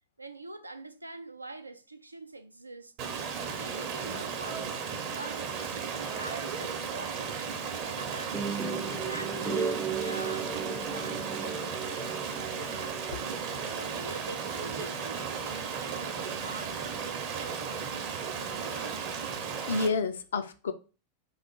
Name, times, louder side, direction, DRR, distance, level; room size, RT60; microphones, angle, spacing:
voice 1, 0.2-2.9 3.5-8.6 9.0-13.3 13.6-19.1, right 2 dB, 85° right, 0.3 m, -45 dB
Stream, 3.0-19.9, right 6 dB, 45° right, 0.7 m, -35 dB
sound 1, 8.3-13.4, right 5 dB, 5° right, 0.4 m, -35 dB
voice 2, 19.5-20.7, left 4 dB, 65° left, 0.4 m, -30 dB
3.2 x 2.4 x 4.3 m
figure-of-eight pair, 90°, 0 cm